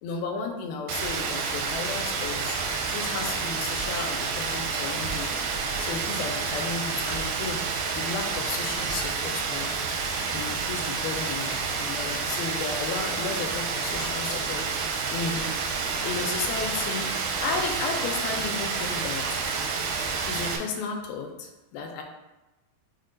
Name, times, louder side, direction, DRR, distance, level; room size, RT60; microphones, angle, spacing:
voice 1, 0.0-2.6 2.9-5.4 5.8-7.7 8.0-9.8 10.3-15.5 15.8-17.2 17.4-19.4 20.3-22.0, left 4 dB, 85° left, 3 dB, 2.4 m, -34 dB
Rain, 0.9-20.6, right 5 dB, 85° right, 2.5 m, -29 dB
6.3 x 2.2 x 3.8 m, 1.0 s
omnidirectional pair, 4.2 m